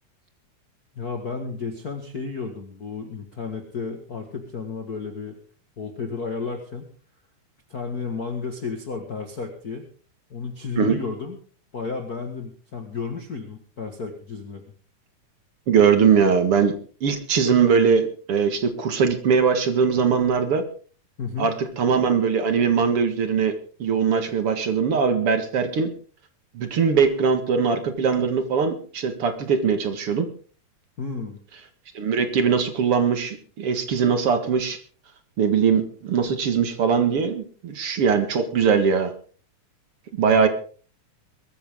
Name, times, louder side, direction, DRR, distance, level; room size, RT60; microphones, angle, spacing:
voice 1, 0.9-5.4 5.8-6.9 7.7-9.9 10.3-11.4 11.7-14.6 21.2-21.5 31.0-31.4 40.2-40.5, left 4 dB, 35° left, 4 dB, 1.7 m, -32 dB
voice 2, 15.7-16.7 17.0-20.6 21.4-23.5 23.8-25.9 26.5-30.3 31.9-34.8 35.4-39.1 40.1-40.5, right 6 dB, 50° right, 8 dB, 2.4 m, -21 dB
21.5 x 14.0 x 3.7 m, 0.40 s
omnidirectional pair, 3.6 m